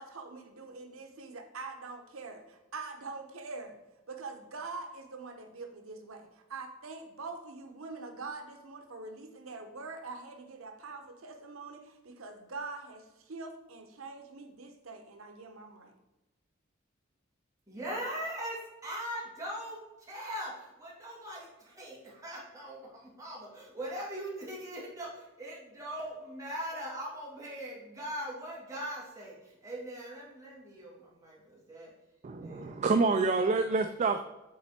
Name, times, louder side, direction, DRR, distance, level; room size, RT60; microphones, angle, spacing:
voice 1, 0.0-3.7 4.1-15.9, right 3 dB, 90° right, 5 dB, 0.9 m, -44 dB
voice 2, 17.7-19.8 20.1-31.9 32.4-33.1, equal, 15° right, -5 dB, 2.1 m, -41 dB
voice 3, 32.2-34.2, right 4 dB, 35° right, 7 dB, 0.3 m, -27 dB
7.5 x 4.1 x 4.3 m, 1.0 s
head